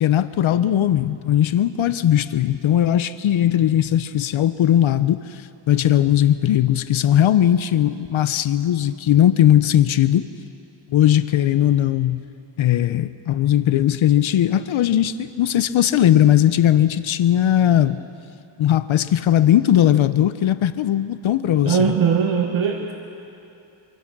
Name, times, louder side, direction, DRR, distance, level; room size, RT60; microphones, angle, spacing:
voice 1, 0.0-10.3 10.9-12.2 12.6-18.0 18.6-21.9, left 11 dB, 75° left, 13 dB, 0.7 m, -18 dB
voice 2, 21.6-22.9, right 7 dB, 75° right, 2 dB, 1.5 m, -20 dB
25.0 x 24.5 x 6.0 m, 2.8 s
wide cardioid pair, 155°, 49 cm